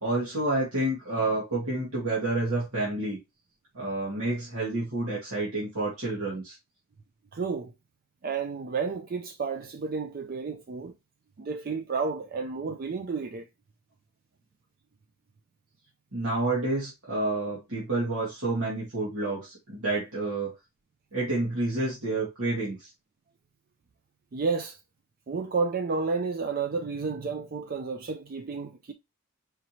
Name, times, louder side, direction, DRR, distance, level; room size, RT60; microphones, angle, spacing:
voice 1, 0.0-3.2 3.7-6.6 16.1-20.6 21.1-22.9, right 2 dB, 85° right, 1.8 m, -29 dB
voice 2, 7.3-7.7 8.2-10.9 11.4-13.5 24.3-24.8 25.3-28.9, right 4 dB, 40° right, 0.4 m, -31 dB
4.9 x 3.0 x 2.8 m
head